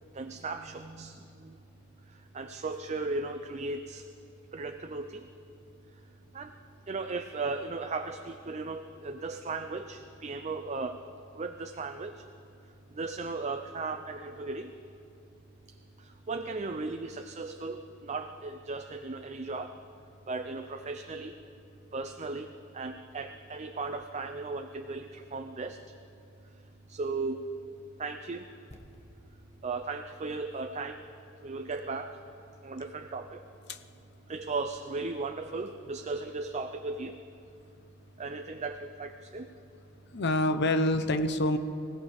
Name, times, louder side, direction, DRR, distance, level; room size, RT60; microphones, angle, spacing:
voice 1, 0.1-1.6 2.1-4.1 4.5-5.3 5.9-6.0 6.3-6.6 6.9-11.0 11.3-12.3 12.9-14.7 15.7-19.8 20.3-21.4 21.9-26.0 26.5-27.5 28.0-28.5 29.6-31.1 31.4-32.2 32.6-33.4 34.3-37.2 38.2-39.5, right 3 dB, 35° right, 6 dB, 0.5 m, -36 dB
sound 1, 28.7-32.6 32.9-33.0, equal, 30° left, 1.3 m, -58 dB
voice 2, 40.1-41.6, left 1 dB, 55° left, 9 dB, 0.8 m, -26 dB
24.5 x 16.5 x 3.5 m, 2.7 s
head